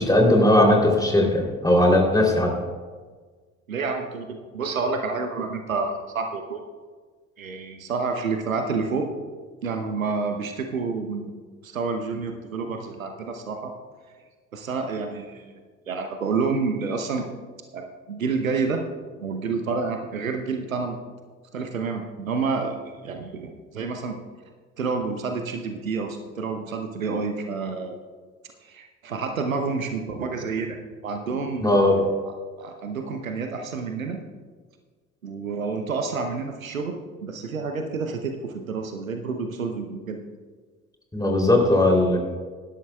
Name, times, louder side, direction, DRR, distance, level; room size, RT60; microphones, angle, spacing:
voice 1, 0.0-2.5 31.6-32.0 41.1-42.2, left 1 dB, 10° left, 0 dB, 3.2 m, -18 dB
voice 2, 3.7-6.6 7.4-9.1 9.6-11.3 11.6-13.7 14.5-15.5 15.9-17.3 17.7-18.8 19.2-21.0 21.5-24.2 24.8-28.0 28.6-30.8 31.0-31.7 32.6-34.2 35.2-40.2, right 4 dB, 85° right, 5 dB, 0.9 m, -29 dB
18.5 x 11.5 x 2.3 m, 1.5 s
figure-of-eight pair, 50°, 40 cm